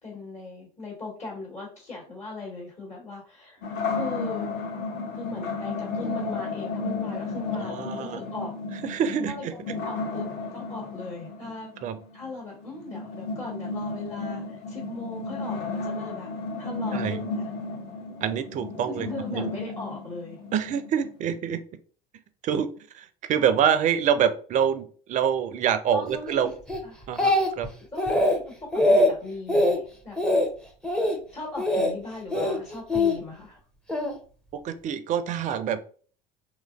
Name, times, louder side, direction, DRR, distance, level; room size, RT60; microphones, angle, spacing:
voice 1, 0.0-4.5 5.1-8.5 9.3-11.7 12.1-16.3 16.6-17.5 18.0-18.1 18.8-20.4 25.9-26.5 26.8-27.0 27.9-30.4 31.3-33.6, left 3 dB, 35° left, -3 dB, 1.3 m, -39 dB
sound 1, 3.6-21.4, left 3 dB, 55° left, 0.6 m, -33 dB
voice 2, 7.6-8.2 8.8-9.5 11.8-12.0 16.9-17.2 18.2-19.5 20.5-21.6 22.4-22.7 22.9-26.5 27.1-27.7 34.5-35.8, right 8 dB, 40° right, 11 dB, 0.4 m, -26 dB
Speech, 26.7-27.7 28.0-28.4 28.7-29.1 29.5-29.8 30.2-30.5 30.8-31.2 31.6-31.9 32.3-33.1 33.9-34.1, left 1 dB, 5° left, 0.6 m, -22 dB
2.9 x 2.4 x 2.3 m, 0.42 s
hypercardioid pair, 75°, 20 cm